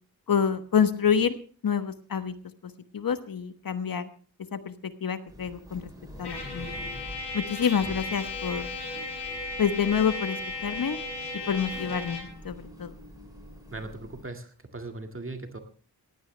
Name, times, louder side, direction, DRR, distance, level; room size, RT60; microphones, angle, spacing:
voice 1, 0.3-1.4 1.6-2.3 2.6-4.1 4.5-5.9 6.2-6.8 7.3-8.7 9.6-11.0 11.5-12.9, left 7 dB, 60° left, 11 dB, 1.2 m, -27 dB
sound 1, 5.3-14.2, left 1 dB, 10° right, 6.7 m, -46 dB
Trumpet, 6.2-12.4, left 3 dB, 80° left, 6.7 m, -36 dB
sound 2, 6.2-12.1, right 4 dB, 20° left, 7.5 m, -44 dB
voice 2, 13.7-15.6, right 2 dB, 30° right, 6 dB, 2.0 m, -39 dB
19.0 x 16.0 x 3.3 m, 0.41 s
wide cardioid pair, 120°, 39 cm